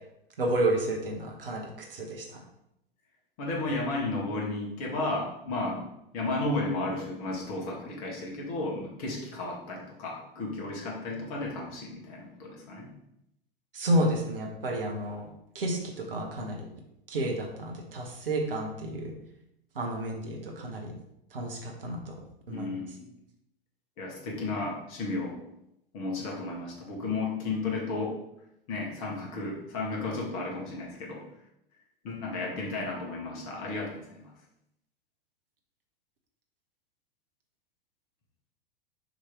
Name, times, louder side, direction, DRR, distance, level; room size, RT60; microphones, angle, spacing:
voice 1, 0.4-2.4 13.7-15.3 15.5-16.7 17.1-19.1 19.7-20.9 21.3-22.7, right 1 dB, 70° right, 1 dB, 1.3 m, -31 dB
voice 2, 3.4-5.8 6.1-12.9 22.5-23.1 24.0-25.4 25.9-28.2 28.7-31.2 32.0-34.3, left 2 dB, 40° left, -2 dB, 1.9 m, -33 dB
6.5 x 3.2 x 4.5 m, 0.81 s
figure-of-eight pair, 95°, 30 cm